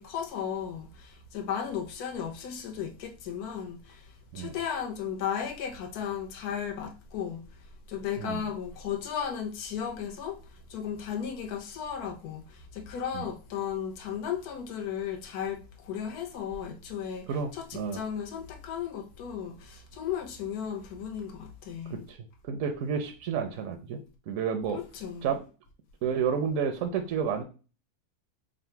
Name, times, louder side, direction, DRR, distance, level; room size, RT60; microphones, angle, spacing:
voice 1, 0.0-7.4 7.9-22.0 24.7-25.3, left 8 dB, 85° left, 1.2 m, -35 dB
voice 2, 17.3-18.0 21.9-22.2 22.5-24.0 24.3-24.8 25.2-25.4 26.0-27.4, right 7 dB, 70° right, 0.8 m, -30 dB
3.8 x 2.1 x 4.4 m
omnidirectional pair, 1.6 m